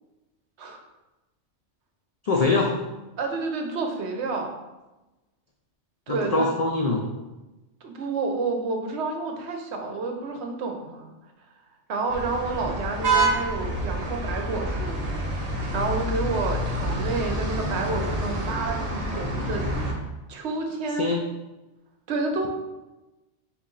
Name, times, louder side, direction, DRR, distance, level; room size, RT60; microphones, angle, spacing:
voice 1, 2.2-2.8 6.1-7.1 21.0-21.3, left 3 dB, 80° left, 0 dB, 0.3 m, -23 dB
voice 2, 3.2-4.6 6.1-6.5 7.8-11.1 11.9-15.1 15.4-19.6 20.3-21.1 22.1-22.5, right 3 dB, 70° right, 3 dB, 0.9 m, -29 dB
sound 1, 12.1-19.9, right 2 dB, 40° right, 0.7 m, -28 dB
4.0 x 3.0 x 3.8 m, 1.1 s
omnidirectional pair, 1.2 m